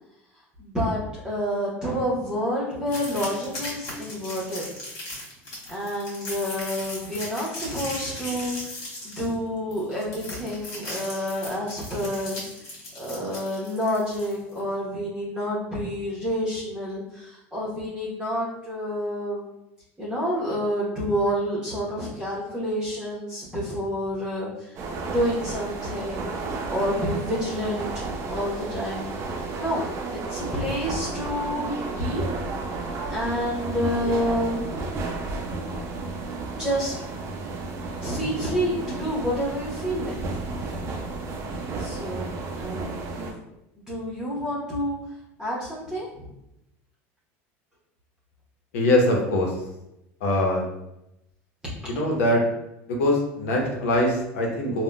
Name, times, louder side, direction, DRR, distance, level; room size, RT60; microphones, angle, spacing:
voice 1, 0.6-4.7 5.7-8.8 9.0-12.7 12.9-19.5 20.0-26.3 26.7-29.1 29.6-29.9 30.1-32.2 33.1-34.9 36.6-37.0 38.0-40.2 41.8-43.4 43.8-45.0 45.4-46.3, equal, 10° right, -8 dB, 0.9 m, -29 dB
sound 1, 2.9-14.6, left 1 dB, 55° left, 1.5 m, -37 dB
sound 2, 24.8-43.3, right 3 dB, 40° right, 0.4 m, -32 dB
voice 2, 48.7-49.5 50.2-50.7 51.9-52.4 52.9-54.8, left 1 dB, 90° left, -1 dB, 0.7 m, -22 dB
3.6 x 2.2 x 2.2 m, 0.87 s
supercardioid pair, 115°, 7 cm